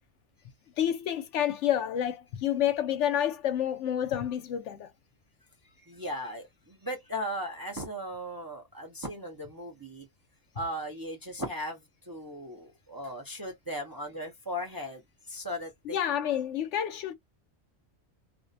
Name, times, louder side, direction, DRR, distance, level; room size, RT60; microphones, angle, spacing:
voice 1, 0.8-4.9 15.9-17.1, left 10 dB, 75° left, 0.9 m, -29 dB
voice 2, 5.8-10.1 10.5-15.0 15.3-16.0, equal, 25° right, 0.5 m, -37 dB
2.5 x 2.1 x 2.5 m
omnidirectional pair, 1.2 m